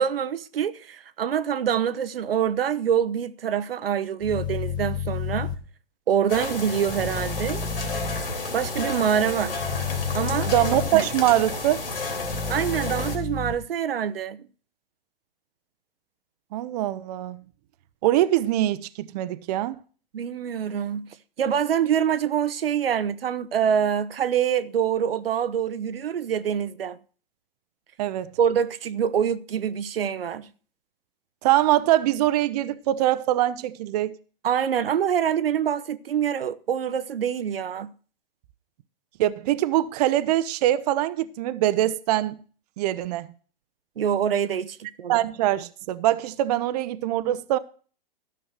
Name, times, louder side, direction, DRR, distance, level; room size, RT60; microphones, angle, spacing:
voice 1, 0.0-5.5 6.1-7.6 8.5-9.6 10.1-10.5 10.9-11.0 12.5-14.4 20.1-21.1 21.4-27.0 28.4-30.5 34.4-37.9 44.0-45.1, right 8 dB, 75° right, 0.8 m, -25 dB
sound 1, 4.2-5.5 6.9-8.2 9.6-10.9 12.2-13.5, left 6 dB, 15° left, 1.3 m, -31 dB
sound 2, 6.3-13.2, left 3 dB, 75° left, 3.1 m, -31 dB
voice 2, 10.5-11.9 16.5-17.4 18.0-19.8 28.0-28.4 31.4-34.2 39.2-42.4 42.8-43.3 45.1-47.6, right 14 dB, 45° right, 0.7 m, -23 dB
13.5 x 6.1 x 6.5 m
hypercardioid pair, 120°, 29 cm